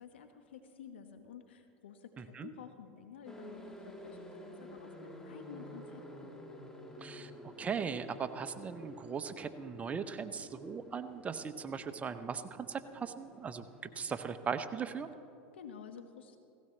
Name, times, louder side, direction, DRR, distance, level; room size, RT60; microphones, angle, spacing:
voice 1, 0.0-6.4 15.5-16.4, left 7 dB, 85° left, 7 dB, 1.2 m, -51 dB
voice 2, 2.2-2.5 7.0-7.3 7.6-13.6 14.0-15.1, right 6 dB, 25° right, 10 dB, 0.7 m, -39 dB
sound 1, 3.3-15.0, left 1 dB, 10° left, 1.6 m, -51 dB
17.0 x 16.5 x 3.3 m, 2.6 s
hypercardioid pair, 105°, 6 cm